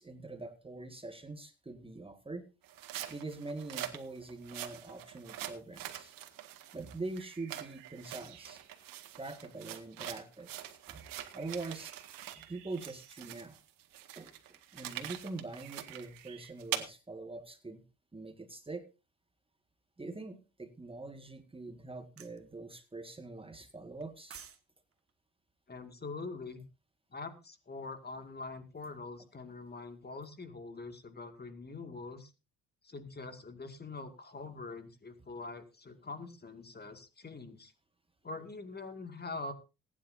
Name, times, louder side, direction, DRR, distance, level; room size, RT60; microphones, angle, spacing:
voice 1, 0.0-2.5 3.1-6.1 6.7-8.6 9.2-10.5 10.9-11.0 11.3-12.0 12.4-13.6 14.2-17.8 18.1-18.9 20.0-24.4, right 3 dB, 15° right, 7 dB, 1.8 m, -44 dB
sound 1, 2.6-12.5 12.7-16.8, right 12 dB, 70° right, 2.0 m, -44 dB
sound 2, 7.2-8.8 11.0-13.4 15.6-16.5, right 13 dB, 85° right, 2.0 m, -57 dB
sound 3, 22.2-22.4 24.0-24.6 24.9-25.1, right 7 dB, 40° right, 1.7 m, -49 dB
voice 2, 25.7-26.6 27.1-32.3 32.8-37.7 38.2-39.5, left 3 dB, 25° left, 8 dB, 2.2 m, -44 dB
20.0 x 10.0 x 2.7 m, 0.30 s
supercardioid pair, 70°, 35 cm